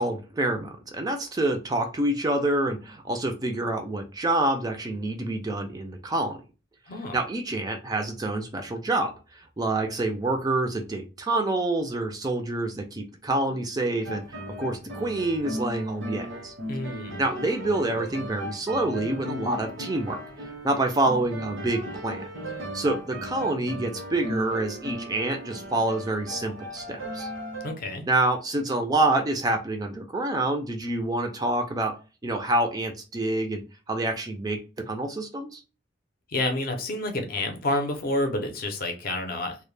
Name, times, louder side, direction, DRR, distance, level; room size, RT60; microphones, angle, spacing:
voice 1, 0.0-6.4 7.1-16.5 17.2-22.2 22.7-27.3 28.1-31.9 32.2-33.6 33.9-34.6 34.9-35.6, right 2 dB, 20° right, 4 dB, 0.3 m, -27 dB
voice 2, 6.9-7.2 16.7-17.2 27.6-28.0 36.3-39.6, left 2 dB, 50° left, 4 dB, 0.5 m, -29 dB
sound 1, 14.0-27.7, equal, 85° right, 0.7 m, -37 dB
2.1 x 2.1 x 3.1 m, 0.32 s
head